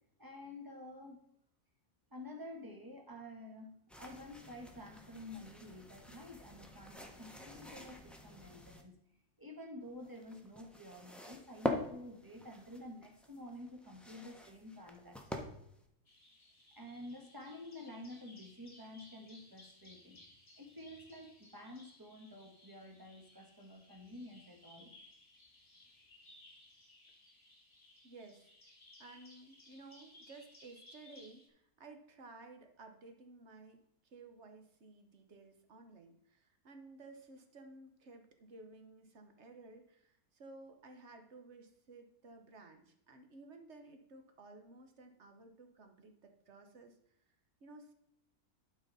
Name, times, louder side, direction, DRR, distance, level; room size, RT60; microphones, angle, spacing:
voice 1, 0.2-1.2 2.1-3.7 4.0-9.0 9.4-15.5 16.7-20.2 20.6-24.9, left 1 dB, 15° right, 2 dB, 1.4 m, -50 dB
sound 1, 3.9-8.8 9.8-15.8, left 1 dB, ahead, 0.7 m, -45 dB
Bird vocalization bird call bird song, 16.1-31.5, left 2 dB, 25° left, 1.5 m, -61 dB
voice 2, 28.0-28.5 29.0-47.1 47.6-47.9, right 3 dB, 50° right, 6 dB, 1.2 m, -55 dB
11.5 x 4.9 x 4.1 m, 0.76 s
omnidirectional pair, 1.5 m